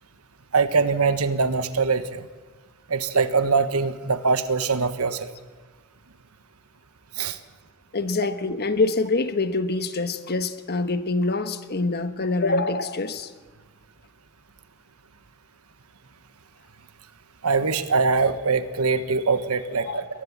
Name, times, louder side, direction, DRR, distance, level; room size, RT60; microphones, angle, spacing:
voice 1, 0.5-2.3 2.9-5.3 7.1-7.4 17.4-20.1, right 4 dB, 85° right, 11 dB, 1.3 m, -23 dB
voice 2, 7.9-13.3 19.8-20.0, left 3 dB, 50° left, 10 dB, 1.2 m, -25 dB
22.0 x 19.5 x 7.4 m, 1.3 s
head